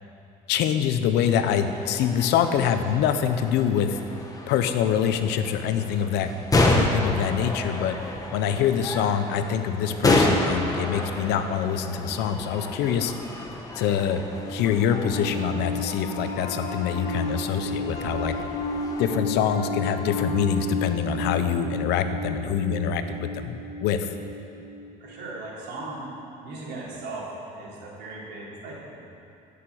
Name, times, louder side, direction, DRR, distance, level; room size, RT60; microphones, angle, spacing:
voice 1, 0.5-4.0 4.5-6.3 6.6-8.0 8.3-13.1 13.7-14.2 14.5-18.3 19.0-24.1, left 8 dB, 90° left, 9 dB, 0.9 m, -25 dB
sound 1, 1.2-19.2, left 1 dB, 20° left, 1.6 m, -30 dB
Piano, 14.2-25.7, left 1 dB, 50° left, 3.5 m, -33 dB
voice 2, 25.0-26.1 26.4-27.3 27.5-29.0, right 2 dB, 85° right, -4 dB, 3.5 m, -37 dB
14.5 x 6.8 x 8.6 m, 2.7 s
cardioid pair, 110°, 17 cm